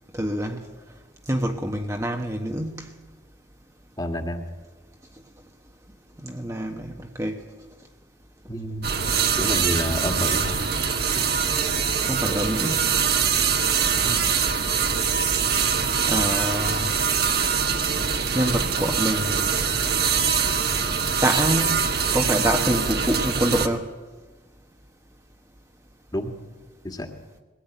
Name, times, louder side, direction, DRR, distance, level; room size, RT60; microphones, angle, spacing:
voice 1, 0.1-0.6 1.3-2.9 6.2-7.4 11.9-12.9 16.1-17.0 18.3-19.5 21.2-21.8 22.1-23.9, equal, 15° right, 1.2 m, -26 dB
voice 2, 4.0-4.4 8.5-9.0 9.3-10.6 13.9-14.3 26.1-26.3 26.8-27.1, left 1 dB, 20° left, 2.0 m, -29 dB
sound 1, 8.8-23.7, right 6 dB, 55° right, 1.6 m, -23 dB
22.0 x 17.5 x 9.2 m
head